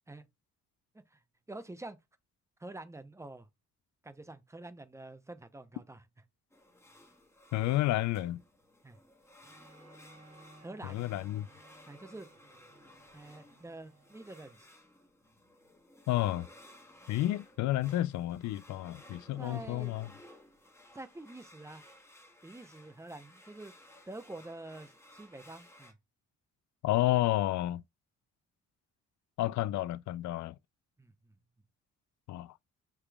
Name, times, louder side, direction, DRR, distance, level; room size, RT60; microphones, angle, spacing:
voice 1, 1.5-2.0 2.6-3.5 4.0-6.0 8.8-9.0 10.6-11.0 11.9-12.3 13.1-14.7 19.4-19.9 20.9-21.8 22.4-23.7 24.1-26.0 31.0-31.3, right 2 dB, 10° right, 0.7 m, -47 dB
sound 1, 6.5-25.9, left 1 dB, 10° left, 1.4 m, -57 dB
voice 2, 7.5-8.4 10.8-11.5 16.1-16.5 17.1-20.1 26.8-27.8 29.4-30.6 32.3-32.6, left 15 dB, 70° left, 0.4 m, -30 dB
Bowed string instrument, 9.4-14.6, right 2 dB, 55° right, 1.7 m, -60 dB
6.9 x 3.0 x 2.3 m
cardioid pair, 90°, 30 cm